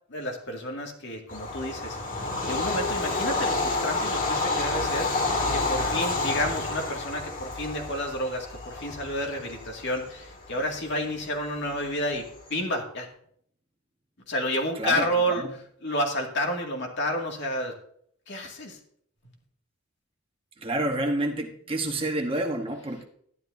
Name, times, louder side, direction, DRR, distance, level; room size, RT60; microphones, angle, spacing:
voice 1, 0.1-2.0 2.5-13.1 14.3-15.5 15.8-17.7 18.3-18.8, equal, 55° left, 1 dB, 2.1 m, -30 dB
Bird vocalization bird call bird song / Train, 1.3-12.5, left 3 dB, 40° left, 1.8 m, -30 dB
voice 2, 14.8-15.1 15.4-15.5 20.6-23.0, right 1 dB, 25° right, 3 dB, 1.1 m, -28 dB
12.0 x 11.0 x 2.7 m, 0.64 s
head